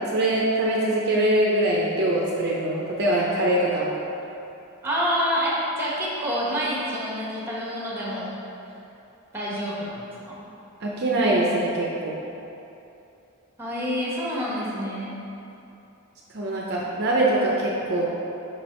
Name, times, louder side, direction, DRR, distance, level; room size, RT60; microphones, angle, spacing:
voice 1, 0.1-3.9 10.8-12.2 16.3-18.1, right 1 dB, 50° right, -4 dB, 0.6 m, -23 dB
voice 2, 4.8-8.3 9.3-10.4 13.6-15.2, equal, 10° right, -6 dB, 1.1 m, -27 dB
5.3 x 4.4 x 4.4 m, 2.8 s
head